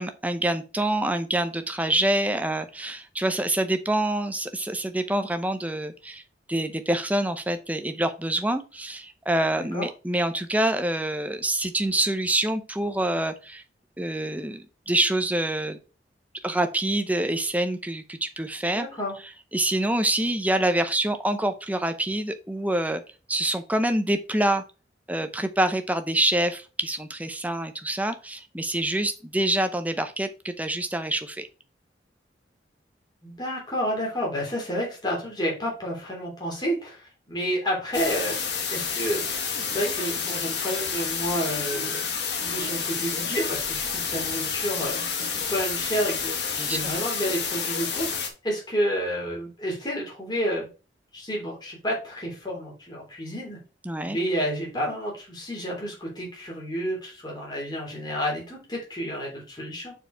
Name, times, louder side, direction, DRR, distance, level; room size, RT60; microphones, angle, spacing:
voice 1, 0.0-6.2 6.5-13.6 14.0-15.8 16.4-18.9 19.5-23.0 23.3-24.6 25.1-31.5 46.6-46.9 53.8-54.2, right 1 dB, 10° right, 8 dB, 0.7 m, -26 dB
voice 2, 9.6-9.9 18.7-19.1 33.2-39.2 39.7-42.0 42.4-50.7 51.1-53.6 54.0-59.9, equal, 25° left, -3 dB, 3.3 m, -30 dB
sound 1, 37.9-48.3, left 6 dB, 65° left, 1.5 m, -29 dB
6.7 x 4.7 x 4.6 m, 0.32 s
head